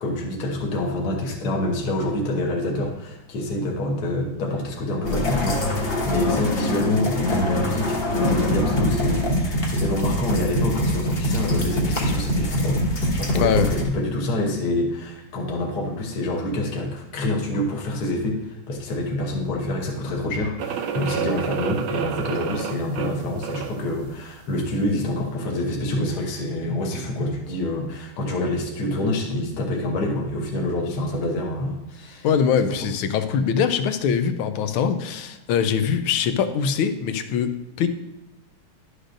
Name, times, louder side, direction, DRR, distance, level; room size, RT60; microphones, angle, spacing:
voice 1, 0.0-32.3 32.6-32.9, left 1 dB, 55° left, -1 dB, 1.5 m, -27 dB
sound 1, 5.0-13.8, left 1 dB, 40° left, 0.9 m, -24 dB
sound 2, 20.6-23.9, right 8 dB, 80° right, 1.4 m, -29 dB
voice 2, 32.2-37.9, left 7 dB, 85° left, 10 dB, 1.5 m, -22 dB
11.5 x 6.5 x 2.6 m, 0.90 s
omnidirectional pair, 2.3 m